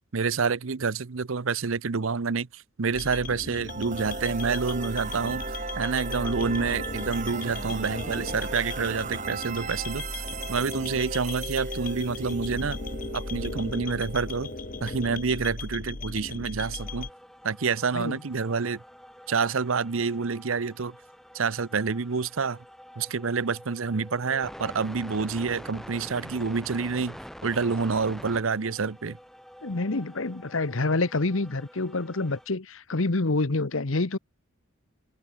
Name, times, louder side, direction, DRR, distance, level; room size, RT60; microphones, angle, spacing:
voice 1, 0.1-5.4 5.8-10.0 10.5-12.8 13.1-14.5 14.8-17.1 17.4-18.8 19.3-21.0 21.3-22.6 23.0-29.2, right 5 dB, 75° right, 0.7 m, -28 dB
sound 1, 2.9-17.1, left 3 dB, 40° left, 1.0 m, -37 dB
sound 2, 3.6-15.5, right 4 dB, 35° right, 1.3 m, -37 dB
sound 3, 16.8-32.5, equal, ahead, 2.5 m, -46 dB
voice 2, 29.6-34.2, left 2 dB, 75° left, 1.2 m, -27 dB
head